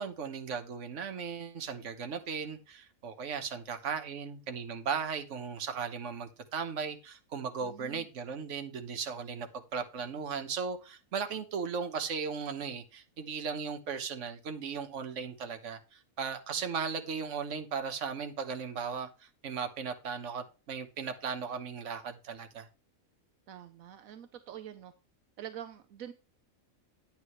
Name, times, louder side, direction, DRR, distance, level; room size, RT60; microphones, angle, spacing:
voice 1, 0.0-22.7, right 6 dB, 60° right, 1.4 m, -37 dB
voice 2, 7.6-8.1 23.5-24.9 25.4-26.1, right 10 dB, 80° right, 1.1 m, -45 dB
9.5 x 8.9 x 3.1 m
omnidirectional pair, 1.4 m